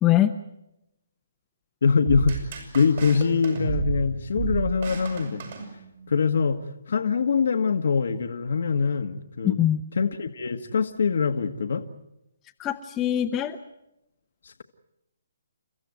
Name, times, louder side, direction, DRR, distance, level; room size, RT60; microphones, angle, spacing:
voice 1, 1.8-5.5 6.1-6.6 6.9-9.7 10.0-11.8 14.4-14.6, left 5 dB, 65° left, 1.4 m, -24 dB
sound 1, 2.1-6.2, right 6 dB, 55° right, 7.6 m, -32 dB
voice 2, 9.4-9.8 12.6-13.6, left 12 dB, 20° left, 0.9 m, -22 dB
30.0 x 14.5 x 9.3 m
hypercardioid pair, 145°, 0 cm